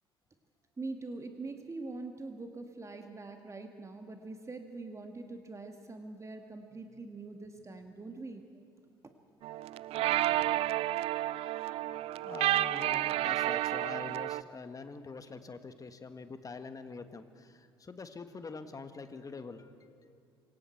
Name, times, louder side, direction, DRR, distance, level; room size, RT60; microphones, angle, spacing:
voice 1, 0.8-8.5, right 3 dB, 25° right, 5 dB, 1.8 m, -43 dB
sound 1, 9.4-14.4, right 15 dB, 50° right, 0.4 m, -31 dB
voice 2, 10.3-10.6 11.3-11.6 12.2-20.2, left 4 dB, 25° left, 9 dB, 1.7 m, -45 dB
26.5 x 22.5 x 4.6 m, 2.5 s
figure-of-eight pair, 55°, 13 cm